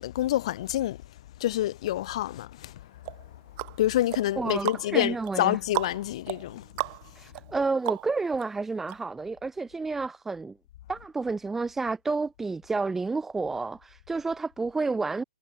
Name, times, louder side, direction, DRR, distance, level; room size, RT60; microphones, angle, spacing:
voice 1, 0.0-3.4 3.8-6.7 7.2-7.3, left 14 dB, 50° left, 2.2 m, -28 dB
sound 1, 3.0-8.4 8.9-9.0, right 40 dB or more, 35° right, 7.1 m, -36 dB
voice 2, 4.4-5.6 7.2-10.6 10.9-15.2, right 3 dB, 5° right, 4.4 m, -30 dB
hypercardioid pair, 135°, 4 cm